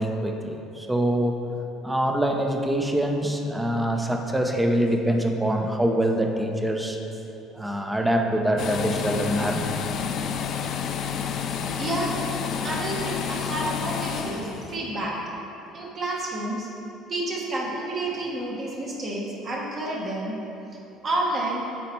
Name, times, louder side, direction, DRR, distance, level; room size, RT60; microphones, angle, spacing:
voice 1, 0.0-1.4 1.8-7.0 7.5-9.8, right 1 dB, 5° right, 3 dB, 0.5 m, -24 dB
sound 1, 8.6-14.8, left 7 dB, 55° left, 0.4 m, -29 dB
voice 2, 11.8-12.2 12.6-15.2 15.7-16.7 17.1-20.4 21.0-21.7, right 1 dB, 35° right, -3 dB, 1.1 m, -29 dB
7.1 x 4.2 x 4.4 m, 3.0 s
cardioid pair, 115°, 0 cm